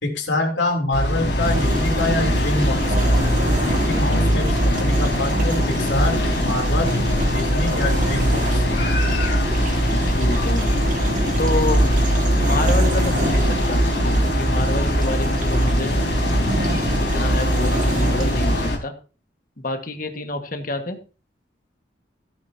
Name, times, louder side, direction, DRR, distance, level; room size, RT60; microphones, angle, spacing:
voice 1, 0.0-3.1 3.6-6.9 7.3-8.7, left 2 dB, 90° left, 2 dB, 3.4 m, -26 dB
sound 1, 0.9-18.8, equal, 70° left, 3.7 m, -21 dB
sound 2, 1.4-18.7, right 1 dB, 45° right, 1.9 m, -29 dB
voice 2, 4.4-5.0 10.1-10.7 11.4-11.8 12.3-13.8 14.4-15.9 17.1-18.9 19.6-21.0, left 2 dB, 50° left, 6 dB, 1.7 m, -28 dB
16.0 x 10.5 x 2.9 m, 0.34 s
head